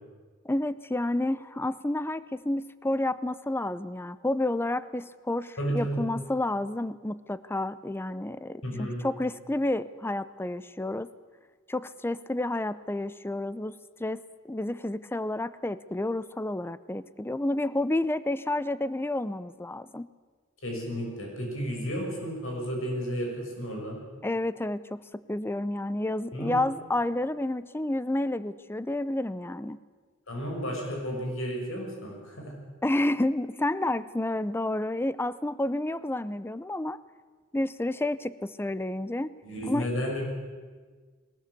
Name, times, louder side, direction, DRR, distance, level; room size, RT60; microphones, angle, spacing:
voice 1, 0.4-11.1 11.7-20.1 24.2-29.8 32.8-37.0 37.5-39.3 39.7-39.9, left 1 dB, 10° left, 16 dB, 0.5 m, -30 dB
voice 2, 5.6-6.0 8.6-9.0 20.6-24.0 26.3-26.6 30.3-32.5 39.4-40.2, equal, 75° left, 0 dB, 6.4 m, -32 dB
21.0 x 18.5 x 8.3 m, 1.5 s
head